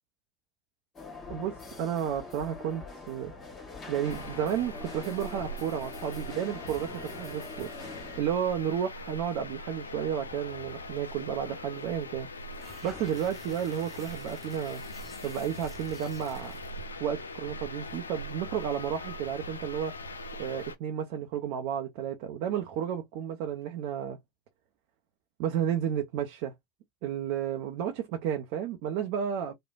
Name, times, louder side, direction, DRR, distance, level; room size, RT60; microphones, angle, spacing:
sound 1, 0.9-8.2, left 3 dB, 30° left, 1.3 m, -44 dB
voice 1, 1.3-3.3 3.9-7.7 8.2-12.3 12.8-14.8 15.2-16.5 17.0-19.9 20.4-24.2 25.4-26.5 27.0-29.5, right 9 dB, 60° right, 0.6 m, -32 dB
sound 2, 4.0-20.8, left 1 dB, 85° left, 0.4 m, -42 dB
sound 3, 12.4-16.8, left 2 dB, 5° left, 1.4 m, -50 dB
3.1 x 2.0 x 2.4 m
figure-of-eight pair, 80°, 0 cm